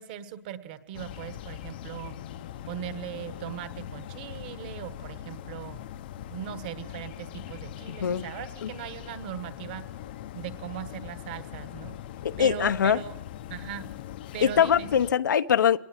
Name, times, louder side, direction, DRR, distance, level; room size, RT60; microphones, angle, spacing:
voice 1, 0.0-2.2 2.7-5.8 6.3-9.8 10.3-11.9 12.4-13.2 13.5-13.9 14.3-14.9, right 10 dB, 25° right, 1.3 m, -39 dB
sound 1, 0.9-15.1, left 11 dB, 30° left, 0.8 m, -41 dB
voice 2, 7.9-8.2 8.6-8.7 12.2-13.0 14.4-15.8, left 8 dB, 75° left, 1.1 m, -23 dB
25.5 x 19.5 x 7.5 m
hypercardioid pair, 180°, 10 cm